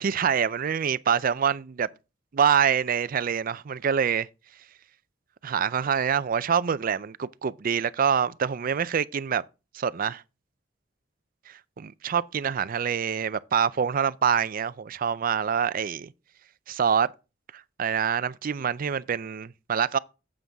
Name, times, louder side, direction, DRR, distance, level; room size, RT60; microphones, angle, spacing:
voice 1, 0.0-1.9 2.3-4.3 5.4-9.4 9.7-10.2 11.5-16.1 16.7-17.1 17.5-20.0, right 7 dB, 50° right, 0.4 m, -26 dB
9.3 x 7.7 x 3.5 m
head